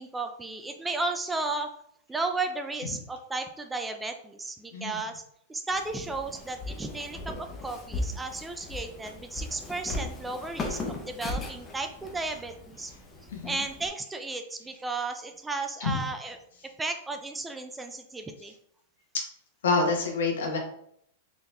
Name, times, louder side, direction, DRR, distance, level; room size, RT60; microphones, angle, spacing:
voice 1, 0.0-1.7 2.1-5.2 5.5-12.9 13.4-16.4 16.8-18.5, right 3 dB, 10° right, 6 dB, 0.4 m, -34 dB
Walk footsteps, 5.7-13.9, left 2 dB, 20° left, 0.7 m, -38 dB
voice 2, 13.3-13.6 15.8-16.0 19.6-20.6, left 3 dB, 85° left, 1 dB, 1.2 m, -27 dB
3.9 x 2.8 x 3.3 m, 0.69 s
supercardioid pair, 140°, 0 cm